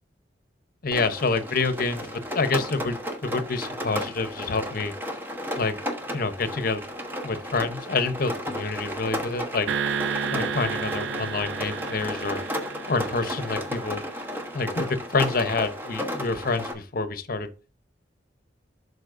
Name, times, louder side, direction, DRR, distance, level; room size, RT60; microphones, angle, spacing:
voice 1, 0.8-3.0 3.2-4.9 5.6-5.8 6.1-6.8 7.2-9.7 10.3-12.4 12.9-14.0 14.5-17.5, left 3 dB, 55° left, 0.8 m, -27 dB
Rain, 0.9-16.7, equal, 10° right, 1.1 m, -33 dB
sound 1, 9.7-14.1, right 6 dB, 80° right, 0.4 m, -32 dB
11.5 x 4.1 x 2.6 m
head